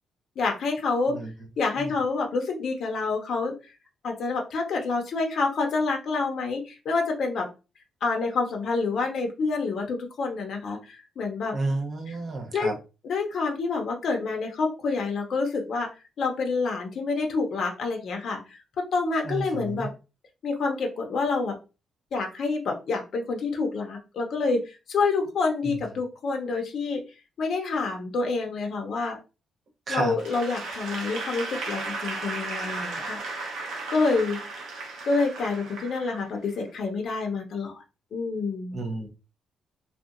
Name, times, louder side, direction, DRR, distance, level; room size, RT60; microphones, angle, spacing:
voice 1, 0.4-1.2 1.6-3.5 4.0-7.5 8.0-11.5 12.1-12.2 12.5-12.7 13.0-15.9 16.2-18.6 18.9-19.9 20.4-21.6 22.1-27.0 27.4-29.2 29.9-33.2 33.9-34.4 35.0-37.8 38.1-38.8, left 4 dB, 50° left, 2 dB, 0.5 m, -27 dB
voice 2, 11.5-12.7 19.2-19.9 25.7-25.8 29.9-30.1 38.7-39.1, right 2 dB, 35° right, 2 dB, 0.6 m, -31 dB
Applause / Crowd, 30.2-36.6, right 3 dB, 90° right, 0.7 m, -35 dB
2.7 x 2.2 x 2.4 m, 0.30 s
cardioid pair, 170°, 0 cm